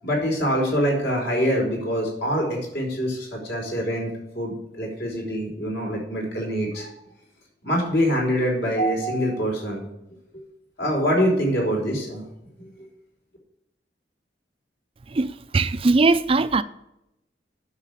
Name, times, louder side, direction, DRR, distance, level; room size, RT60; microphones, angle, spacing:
voice 1, 0.0-6.9 7.6-9.8 10.8-12.2, equal, 65° left, 4.8 m, -24 dB
voice 2, 15.1-16.6, right 3 dB, 30° right, 0.4 m, -20 dB
9.8 x 6.6 x 8.3 m
head